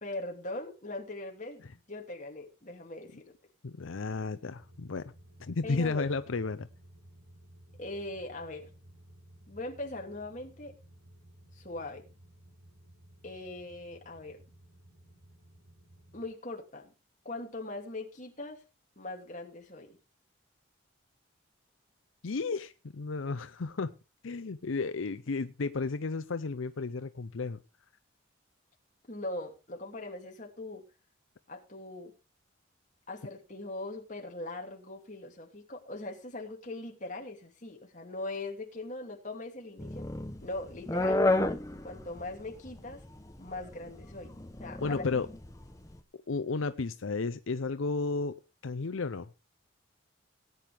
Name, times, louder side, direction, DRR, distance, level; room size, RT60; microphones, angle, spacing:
voice 1, 0.0-3.3 5.6-6.1 7.8-8.7 9.5-10.7 11.5-12.0 13.2-14.4 16.1-16.9 17.2-18.6 19.0-20.0 29.1-30.8 31.5-32.1 33.1-40.0 40.4-41.2 41.8-43.0 43.4-44.3 44.6-45.0, left 2 dB, 35° left, 2 dB, 2.7 m, -40 dB
voice 2, 3.6-5.1 5.4-6.7 22.2-23.9 24.2-27.6 44.8-45.3 46.3-48.3 48.6-49.3, left 4 dB, 80° left, 12 dB, 0.6 m, -33 dB
sound 1, 4.6-16.3, right 1 dB, 65° right, 6.3 m, -56 dB
sound 2, 39.8-45.9, left 2 dB, 15° left, 0.9 m, -31 dB
17.5 x 9.3 x 3.5 m, 0.30 s
head